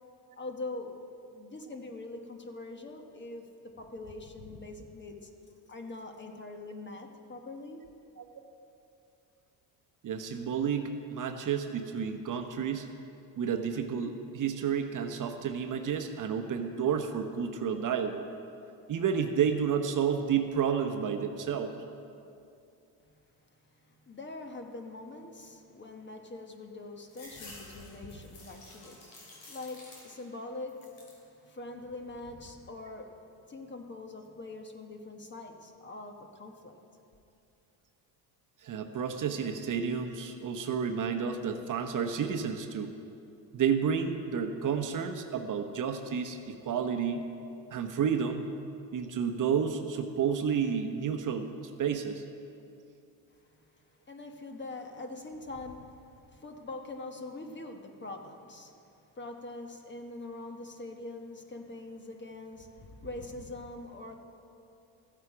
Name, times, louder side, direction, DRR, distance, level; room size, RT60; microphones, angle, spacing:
voice 1, 0.4-1.0 1.3-5.3 5.7-7.8 23.7-33.1 33.5-36.8 53.4-58.7 59.1-64.2, left 2 dB, 25° left, 4 dB, 1.2 m, -43 dB
voice 2, 10.0-12.9 13.4-18.2 18.9-21.7 38.6-42.9 43.5-47.2 47.7-48.4 48.9-52.2, right 7 dB, 45° right, 6 dB, 0.9 m, -31 dB
sound 1, 27.1-30.4 30.7-31.3 31.8-32.5, left 2 dB, 85° left, 3.1 m, -51 dB
14.5 x 8.0 x 5.0 m, 2.6 s
supercardioid pair, 90°, 44 cm